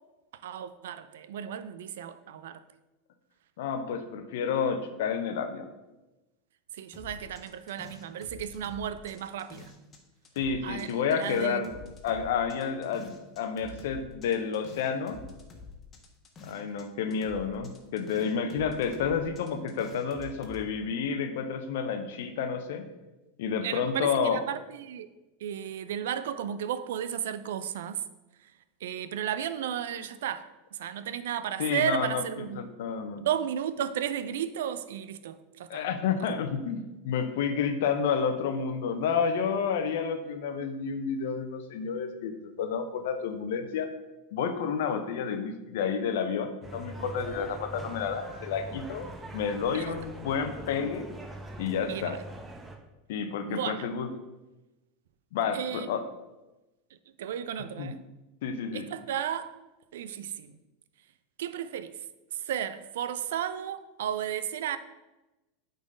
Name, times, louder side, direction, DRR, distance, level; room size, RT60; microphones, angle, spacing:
voice 1, 0.4-2.6 6.7-9.7 10.6-11.6 23.6-25.1 25.4-28.0 28.8-32.6 33.2-35.8 49.7-49.9 51.9-52.2 53.5-53.9 55.5-55.9 57.2-58.0 58.7-59.6 59.9-60.5 61.4-61.9 62.3-64.8, right 9 dB, 75° right, 0.5 m, -34 dB
voice 2, 3.6-5.7 10.4-11.8 12.0-15.2 16.4-22.8 23.4-24.4 31.6-33.2 35.7-43.9 44.3-51.1 51.6-52.2 53.1-54.1 55.3-56.0 57.8-57.9 58.4-58.9, left 6 dB, 70° left, 0.9 m, -30 dB
sound 1, 6.9-10.0 10.2-16.8 17.1-20.6, left 4 dB, 30° left, 1.4 m, -48 dB
sound 2, 46.6-52.8, right 1 dB, 15° right, 1.1 m, -42 dB
8.4 x 4.0 x 5.0 m
hypercardioid pair, 95°, 0 cm